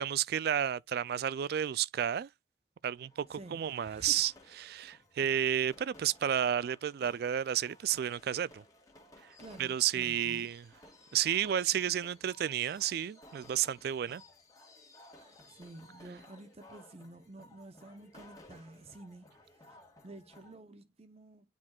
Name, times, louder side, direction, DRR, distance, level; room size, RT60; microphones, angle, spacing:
voice 1, 0.0-2.3 2.8-4.3 4.6-8.6 9.6-10.6 11.1-14.2, right 10 dB, 60° right, 0.3 m, -31 dB
sound 1, 3.0-20.5, left 1 dB, 20° left, 1.8 m, -58 dB
voice 2, 3.3-4.2 9.4-10.5 15.2-19.8 20.0-21.5, right 2 dB, 35° right, 0.7 m, -51 dB
9.6 x 4.5 x 2.3 m
head